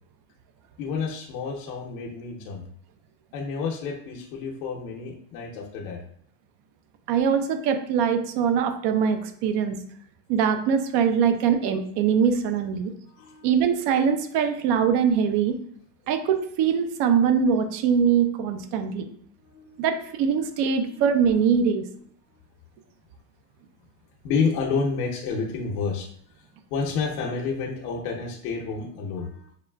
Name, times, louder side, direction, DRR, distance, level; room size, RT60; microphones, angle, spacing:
voice 1, 0.8-2.6 3.3-6.0 13.0-13.5 19.5-19.8 20.9-21.0 24.2-26.1 26.7-29.5, left 5 dB, 75° left, -1 dB, 1.0 m, -29 dB
voice 2, 7.1-9.8 10.3-12.9 13.4-15.6 16.1-19.1 19.8-21.8, right 7 dB, 60° right, 8 dB, 0.7 m, -22 dB
6.8 x 2.3 x 2.3 m, 0.64 s
supercardioid pair, 115°, 47 cm